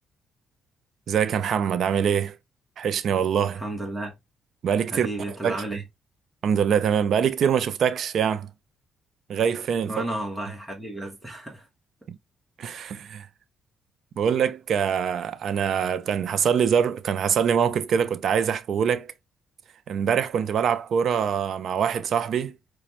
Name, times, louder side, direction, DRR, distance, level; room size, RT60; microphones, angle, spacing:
voice 1, 1.1-2.4 2.8-3.6 4.6-5.1 5.4-5.6 6.4-8.5 9.3-10.0 12.1-12.2 12.6-13.3 14.2-19.1 19.9-22.6, right 7 dB, 65° right, 0.4 m, -24 dB
voice 2, 3.5-4.1 4.9-5.8 9.9-11.7, right 1 dB, 5° right, 1.1 m, -32 dB
5.0 x 2.2 x 2.9 m
cardioid pair, 90°, 0 cm